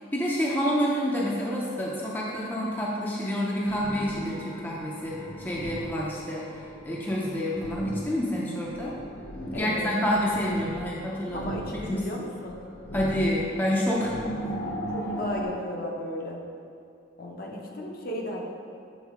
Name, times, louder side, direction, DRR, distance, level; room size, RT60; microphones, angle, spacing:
voice 1, 0.0-9.0 9.5-11.4 11.7-12.0 12.9-14.1 17.7-17.8, equal, 10° left, -5 dB, 0.5 m, -28 dB
sound 1, 3.6-15.4, right 1 dB, 70° left, 1.1 m, -38 dB
voice 2, 9.5-9.9 11.3-12.6 14.9-16.4 17.2-18.4, left 1 dB, 50° left, -1 dB, 0.7 m, -35 dB
7.3 x 3.9 x 3.5 m, 2.5 s
head